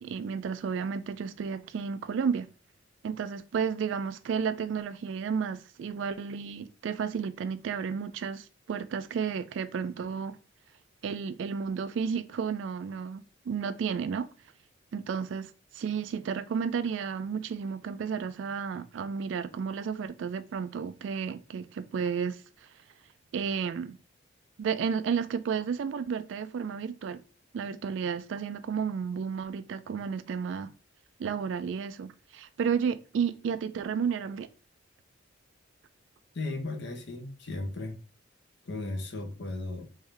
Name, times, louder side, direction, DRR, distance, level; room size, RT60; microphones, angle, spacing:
voice 1, 0.0-2.5 3.0-10.4 11.0-14.3 14.9-22.7 23.3-24.0 24.6-27.2 27.5-30.7 31.2-34.5, right 6 dB, 65° right, 0.3 m, -32 dB
voice 2, 36.3-38.0 38.7-39.9, left 2 dB, 60° left, 0.9 m, -35 dB
3.5 x 2.6 x 3.3 m
head